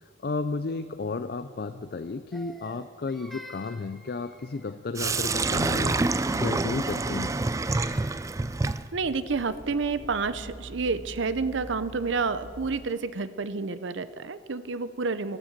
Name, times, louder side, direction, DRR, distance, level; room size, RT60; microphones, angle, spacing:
voice 1, 0.2-7.3, left 3 dB, 55° left, 11 dB, 0.4 m, -33 dB
Crying sobbing, 2.3-4.8 7.1-8.5, equal, ahead, 0.9 m, -49 dB
Sink (filling or washing), 5.0-12.9, right 3 dB, 15° right, 0.3 m, -29 dB
voice 2, 8.9-15.4, right 4 dB, 80° right, 13 dB, 0.7 m, -29 dB
14.0 x 12.5 x 7.3 m, 2.3 s
head